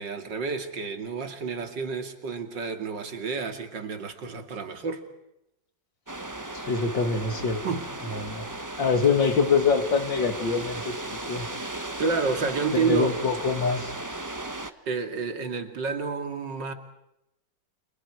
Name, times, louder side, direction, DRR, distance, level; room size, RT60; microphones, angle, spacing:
voice 1, 0.0-5.1 7.6-7.9 12.0-13.2 14.9-16.7, right 5 dB, 75° right, 3.1 m, -29 dB
sound 1, 6.1-14.7, right 2 dB, 15° right, 1.0 m, -36 dB
voice 2, 6.5-7.6 8.0-8.5 8.8-11.5 12.7-13.9, left 5 dB, 90° left, 3.0 m, -25 dB
30.0 x 28.5 x 4.8 m
omnidirectional pair, 2.0 m